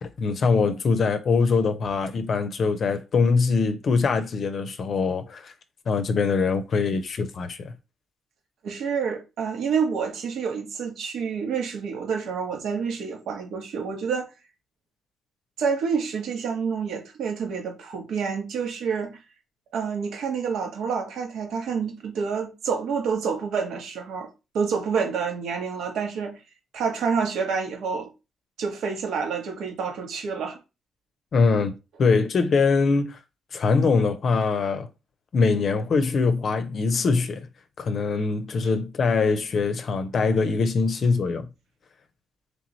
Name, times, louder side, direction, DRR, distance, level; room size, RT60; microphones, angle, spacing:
voice 1, 0.0-5.5 5.9-7.7 31.3-33.2 33.5-34.9 35.3-37.5 37.8-41.5, left 4 dB, 50° left, 0.6 m, -23 dB
voice 2, 8.6-14.3 15.6-19.2 19.7-26.4 26.7-28.1 28.6-30.6, right 6 dB, 75° right, 1.3 m, -28 dB
3.3 x 3.1 x 4.0 m
cardioid pair, 90°, 0 cm